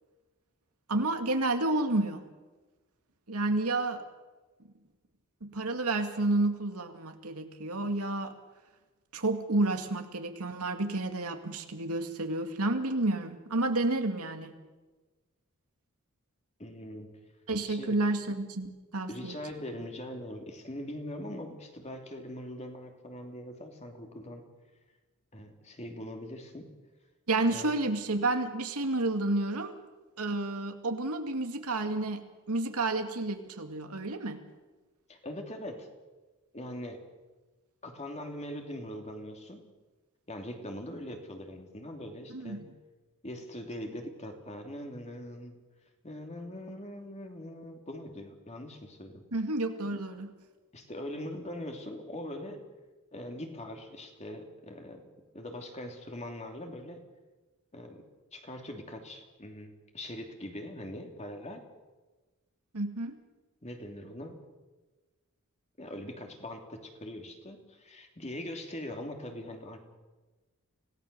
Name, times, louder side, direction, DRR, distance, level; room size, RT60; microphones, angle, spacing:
voice 1, 0.9-2.2 3.3-4.0 5.4-8.3 9.1-14.5 17.5-19.4 27.3-29.7 30.2-34.4 42.3-42.7 49.3-50.3 62.7-63.2, right 2 dB, 90° right, 6 dB, 2.2 m, -30 dB
voice 2, 16.6-17.2 17.6-18.0 19.1-24.4 25.3-26.7 27.5-27.7 35.1-35.9 36.5-37.0 37.8-39.7 40.3-42.6 43.2-45.6 46.0-49.3 50.7-52.6 53.1-55.0 55.3-57.0 57.7-58.0 58.3-61.6 63.6-64.4 65.8-69.8, left 1 dB, 30° left, 4 dB, 2.9 m, -42 dB
26.0 x 17.5 x 6.9 m, 1.2 s
head